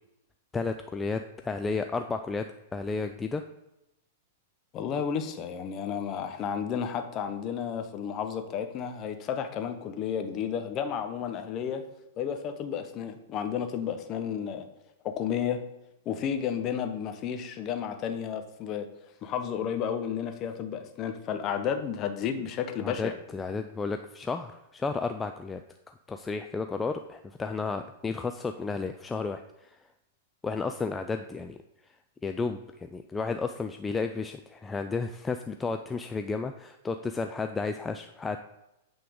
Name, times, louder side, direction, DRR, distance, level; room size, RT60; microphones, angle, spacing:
voice 1, 0.5-3.4 22.8-25.6 25.9-29.8 30.4-31.6 32.2-38.4, left 4 dB, 15° left, 7 dB, 0.4 m, -32 dB
voice 2, 4.7-11.8 12.2-14.7 15.0-15.6 16.1-18.9 19.2-23.1, left 8 dB, 35° left, 7 dB, 0.8 m, -32 dB
8.4 x 3.7 x 5.1 m, 0.90 s
hypercardioid pair, 105°, 0 cm